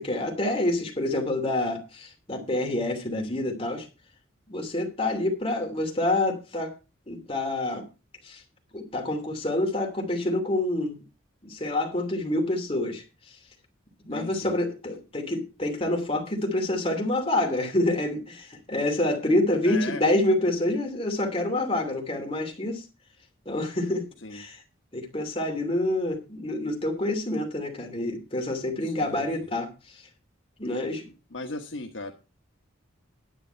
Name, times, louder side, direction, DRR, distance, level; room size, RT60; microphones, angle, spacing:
voice 1, 0.0-3.9 4.5-6.7 7.1-7.8 8.2-8.4 8.7-11.0 11.4-13.0 14.1-22.8 23.5-24.0 24.3-24.6 24.9-29.7 30.6-31.1, left 1 dB, 30° left, 2 dB, 2.9 m, -27 dB
voice 2, 14.1-14.5 19.6-20.0 24.2-24.5 28.8-29.5 31.0-32.1, left 3 dB, 65° left, 4 dB, 1.3 m, -38 dB
10.5 x 9.2 x 4.5 m, 0.30 s
head